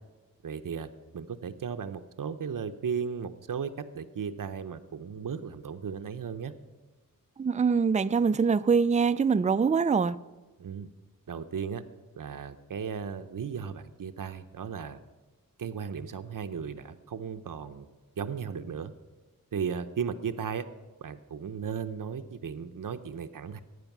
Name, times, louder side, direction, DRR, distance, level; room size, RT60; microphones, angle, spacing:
voice 1, 0.4-0.9 1.1-6.5 10.6-10.9 11.3-11.8 12.2-15.0 15.6-17.9 18.2-18.9 19.5-20.7 21.0-23.6, right 6 dB, 65° right, 8 dB, 0.7 m, -35 dB
voice 2, 7.4-10.2, right 5 dB, 20° right, 14 dB, 0.3 m, -24 dB
14.5 x 9.3 x 6.0 m, 1.2 s
wide cardioid pair, 75°, 34 cm